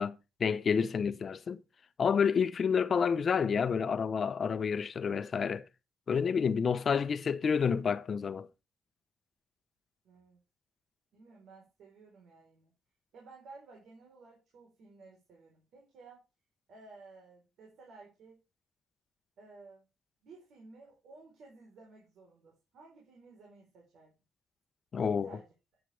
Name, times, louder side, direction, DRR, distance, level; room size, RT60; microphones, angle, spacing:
voice 1, 0.0-1.6 2.0-5.6 6.1-8.5 24.9-25.3, left 6 dB, 45° left, 0.9 m, -29 dB
voice 2, 10.0-10.4 11.1-12.7 13.1-16.3 16.7-18.4 19.4-19.8 20.2-24.1 24.9-25.8, right 3 dB, 75° right, 4.2 m, -55 dB
10.0 x 9.1 x 3.4 m
cardioid pair, 90°, 0 cm